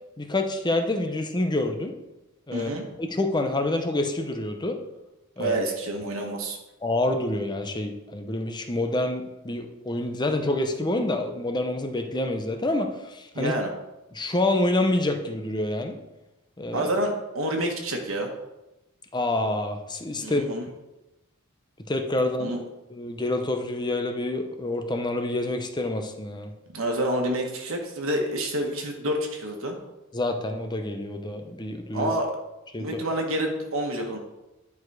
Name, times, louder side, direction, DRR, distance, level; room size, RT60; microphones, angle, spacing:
voice 1, 0.2-1.9 2.5-2.7 3.0-4.8 5.4-5.6 6.8-13.5 14.1-16.0 16.6-16.9 19.1-20.4 21.9-22.5 22.9-26.5 30.1-32.1 32.7-33.0, left 2 dB, 20° left, 6 dB, 0.7 m, -27 dB
voice 2, 2.5-2.8 5.4-6.6 13.3-13.7 16.7-18.3 20.2-20.6 22.4-22.6 26.7-29.8 31.9-32.3 32.8-34.2, right 1 dB, 70° right, 2 dB, 1.3 m, -28 dB
10.0 x 4.8 x 4.7 m, 0.99 s
head